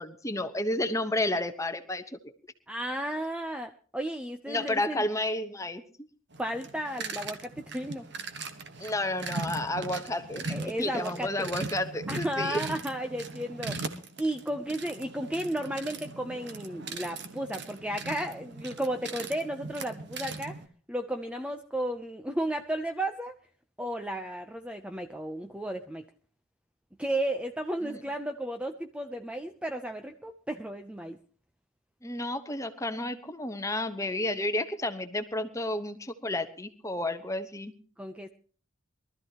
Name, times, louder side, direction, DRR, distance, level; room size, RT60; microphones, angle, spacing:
voice 1, 0.0-2.3 4.5-5.8 8.8-12.6 27.8-28.0 32.0-37.7, left 1 dB, 15° left, 8 dB, 1.2 m, -31 dB
voice 2, 2.7-5.0 6.4-8.0 10.5-11.5 12.1-13.8 14.2-20.6 20.9-23.3 23.8-26.1 27.0-31.2 38.0-38.3, right 1 dB, 5° right, 6 dB, 0.6 m, -33 dB
sound 1, 6.3-20.7, right 3 dB, 55° right, 1.5 m, -39 dB
23.0 x 13.5 x 3.0 m, 0.42 s
head